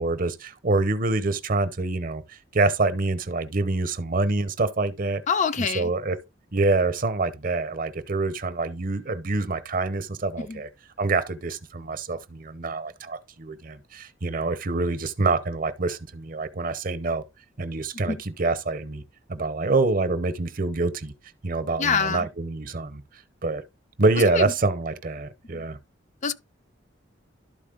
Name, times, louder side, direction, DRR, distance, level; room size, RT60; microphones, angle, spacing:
voice 1, 0.0-2.2 2.5-5.2 5.6-6.2 6.5-10.7 11.0-17.2 17.6-19.0 19.3-21.1 21.4-23.0 23.4-23.6 24.0-25.8, right 3 dB, 45° right, 0.8 m, -26 dB
voice 2, 5.3-5.9 10.4-10.6 17.9-18.2 21.8-22.3 24.3-24.5 25.5-25.6 26.2-26.3, left 5 dB, 40° left, 0.5 m, -26 dB
12.0 x 4.2 x 3.8 m
head